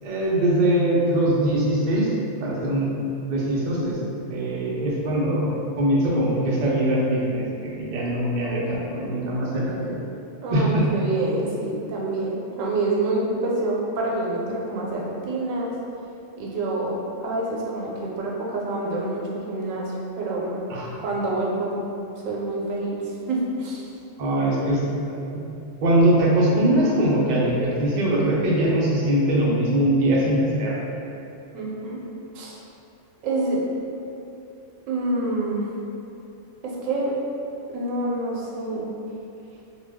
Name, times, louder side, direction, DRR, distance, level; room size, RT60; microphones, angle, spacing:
voice 1, 0.0-2.1 2.4-3.0 3.3-4.0 4.3-5.5 5.8-10.0 10.5-10.8 20.7-21.0 24.2-25.4 25.8-30.7, right 1 dB, 65° right, -4 dB, 0.4 m, -22 dB
voice 2, 10.4-15.7 16.4-20.6 21.0-21.8 22.2-23.9 31.5-32.0 32.3-32.6 33.2-33.6 34.9-35.7 36.6-37.1 37.7-38.9, right 2 dB, 85° right, -3 dB, 1.0 m, -27 dB
2.3 x 2.2 x 3.4 m, 2.8 s
omnidirectional pair, 1.3 m